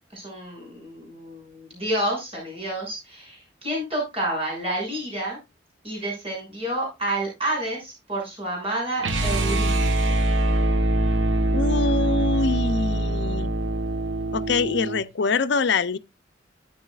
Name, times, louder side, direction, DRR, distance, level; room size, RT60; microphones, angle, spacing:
voice 1, 0.1-5.4 5.8-10.2, right 1 dB, 30° right, 6.5 m, -29 dB
sound 1, 9.0-15.1, right 1 dB, 85° right, 1.2 m, -23 dB
voice 2, 11.5-13.5 14.3-16.0, left 4 dB, 65° left, 0.6 m, -24 dB
13.0 x 8.8 x 2.4 m
head